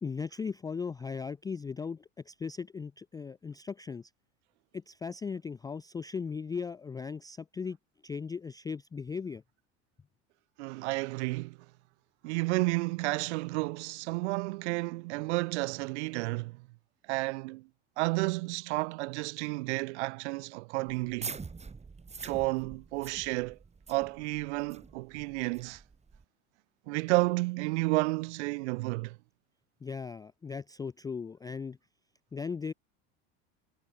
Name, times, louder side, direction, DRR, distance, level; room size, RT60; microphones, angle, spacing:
voice 1, 0.0-2.0 2.3-4.1 4.7-7.8 8.0-9.4 29.8-31.8 32.3-32.7, left 5 dB, 10° left, 0.4 m, -37 dB
voice 2, 10.6-11.6 12.2-16.6 17.1-17.7 18.0-21.4 22.2-23.6 23.9-25.8 26.9-29.2, right 24 dB, 70° right, 1.6 m, -31 dB
sound 1, 20.9-26.2, right 4 dB, 20° right, 4.1 m, -45 dB
hypercardioid pair, 95°, 35 cm